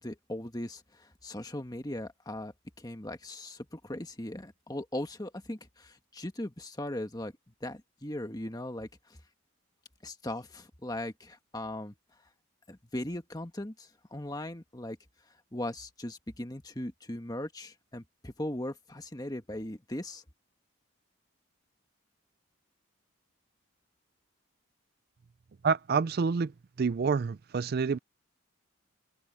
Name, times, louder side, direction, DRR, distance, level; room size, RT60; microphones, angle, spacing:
voice 1, 0.0-7.3 7.6-9.2 10.0-11.9 12.7-15.0 15.5-20.2, left 1 dB, 20° left, 1.5 m, -39 dB
voice 2, 25.6-26.5 26.8-28.0, right 5 dB, 45° right, 0.4 m, -27 dB
head